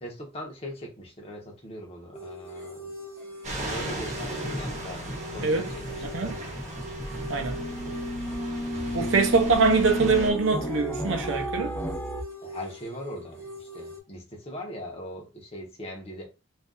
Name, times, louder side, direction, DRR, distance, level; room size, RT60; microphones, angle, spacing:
voice 1, 0.0-2.9 3.7-5.8 6.1-6.2 12.4-16.3, equal, 30° left, 0.9 m, -40 dB
sound 1, 2.1-14.0, equal, 15° right, 1.0 m, -42 dB
sound 2, 3.4-10.3, right 1 dB, 35° right, 1.1 m, -37 dB
sound 3, 4.1-12.2, equal, 10° left, 0.3 m, -34 dB
voice 2, 6.0-6.3 7.3-7.6 8.9-11.8, right 4 dB, 85° right, 0.7 m, -23 dB
2.6 x 2.5 x 3.6 m
head